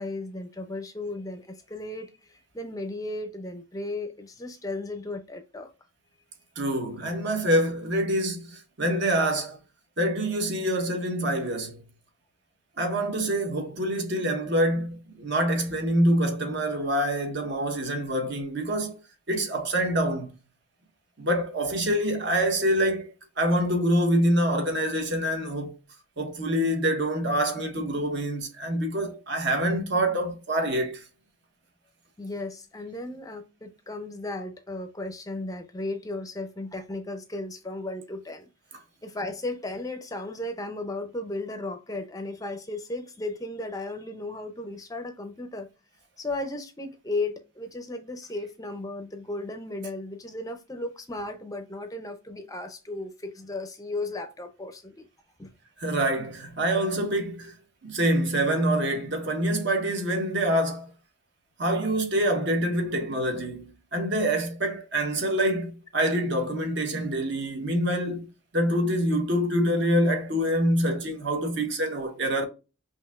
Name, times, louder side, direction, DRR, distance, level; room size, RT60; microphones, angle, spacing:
voice 1, 0.0-5.7 32.2-38.5 39.0-45.7 46.2-55.1 55.4-55.5, left 2 dB, 15° left, 0.5 m, -35 dB
voice 2, 6.6-9.6 10.0-11.8 12.8-19.0 19.3-20.3 21.2-25.7 26.2-31.0 55.8-57.5 57.8-60.9 61.6-68.3 68.5-72.5, right 1 dB, 60° right, 1.0 m, -26 dB
5.7 x 2.8 x 2.3 m
head